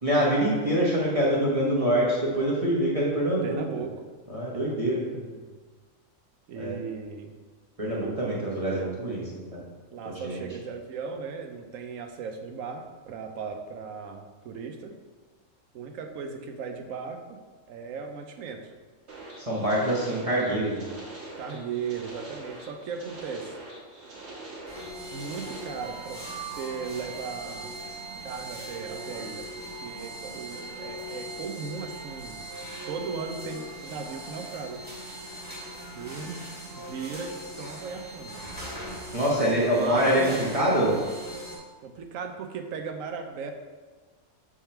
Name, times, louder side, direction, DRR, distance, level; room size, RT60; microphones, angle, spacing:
voice 1, 0.0-3.6 4.3-5.0 6.6-6.8 7.8-9.6 10.2-10.4 19.4-20.9 39.1-41.0, right 1 dB, 30° right, -6 dB, 1.2 m, -25 dB
voice 2, 3.4-3.9 4.5-5.6 6.5-7.3 7.9-8.9 9.9-15.0 15.7-17.4 17.7-18.7 21.4-23.6 25.1-27.8 28.2-32.4 32.9-34.8 36.0-36.5 36.8-38.5 39.3-40.5 41.8-43.5, right 5 dB, 85° right, 5 dB, 1.1 m, -37 dB
sound 1, 19.1-25.7, right 2 dB, 55° right, 1.6 m, -43 dB
sound 2, 24.7-41.6, right 1 dB, 5° right, 1.9 m, -40 dB
7.3 x 3.7 x 4.4 m, 1.4 s
omnidirectional pair, 1.4 m